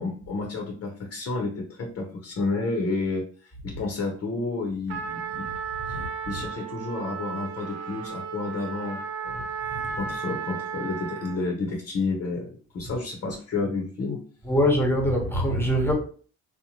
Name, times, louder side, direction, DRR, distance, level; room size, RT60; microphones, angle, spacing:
voice 1, 0.0-5.5 5.9-9.5 9.9-14.2, left 3 dB, 50° left, 0.7 m, -31 dB
Trumpet, 4.9-11.5, right 6 dB, 65° right, 0.6 m, -34 dB
voice 2, 5.9-6.5 9.3-9.4 9.7-10.1 12.8-13.0 14.4-15.9, equal, 5° left, 0.9 m, -25 dB
2.7 x 2.1 x 2.9 m
cardioid pair, 90°, 30 cm